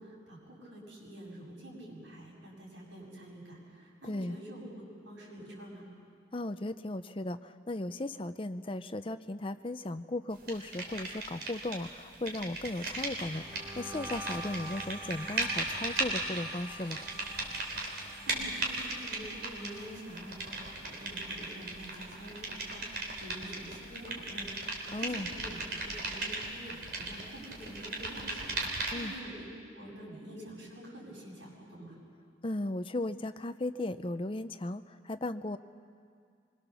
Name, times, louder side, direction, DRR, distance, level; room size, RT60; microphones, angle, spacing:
voice 1, 0.0-5.9 18.2-29.4 29.7-31.9, equal, 80° right, -3 dB, 7.8 m, -47 dB
voice 2, 4.0-4.4 6.3-17.0 24.9-25.3 28.9-29.1 32.4-35.6, left 2 dB, 30° left, 11 dB, 0.6 m, -36 dB
sound 1, 10.5-11.9 12.1-29.2, right 2 dB, 55° right, 3.8 m, -37 dB
sound 2, 12.6-21.8 22.1-22.5 22.8-24.4, right 1 dB, 15° right, 1.3 m, -48 dB
25.0 x 22.0 x 7.0 m, 2.2 s
head